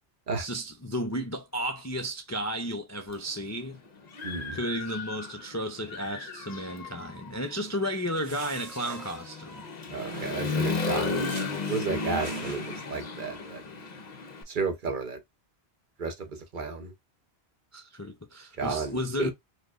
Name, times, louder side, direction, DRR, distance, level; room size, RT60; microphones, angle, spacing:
voice 1, 0.4-3.8 4.5-9.7 17.7-19.3, equal, 25° left, 0.3 m, -33 dB
Human voice / Motorcycle, 3.1-3.2 3.7-5.5 5.8-14.4, left 3 dB, 45° left, 0.9 m, -34 dB
voice 2, 4.2-4.6 9.9-11.2 11.7-13.6 14.5-15.2 16.0-16.3 16.5-16.9 18.6-19.3, right 4 dB, 55° right, 0.9 m, -32 dB
sound 1, 7.9-9.6 10.0-10.8 11.3-11.9 12.2-13.0, right 6 dB, 90° right, 1.1 m, -45 dB
4.3 x 2.9 x 2.3 m
omnidirectional pair, 1.1 m